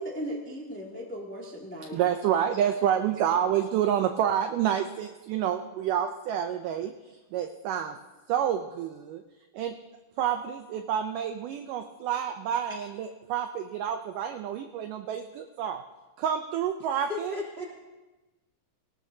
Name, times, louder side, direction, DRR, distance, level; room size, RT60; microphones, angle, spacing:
voice 1, 0.0-2.0 2.9-3.5, equal, 5° left, -2 dB, 1.0 m, -38 dB
voice 2, 1.9-6.9 7.3-8.0 8.3-9.2 9.5-9.8 10.2-15.8 16.2-17.3, right 9 dB, 80° right, 6 dB, 1.9 m, -28 dB
voice 3, 17.1-17.6, left 3 dB, 20° right, -3 dB, 2.6 m, -34 dB
19.5 x 18.5 x 2.8 m, 1.2 s
omnidirectional pair, 4.4 m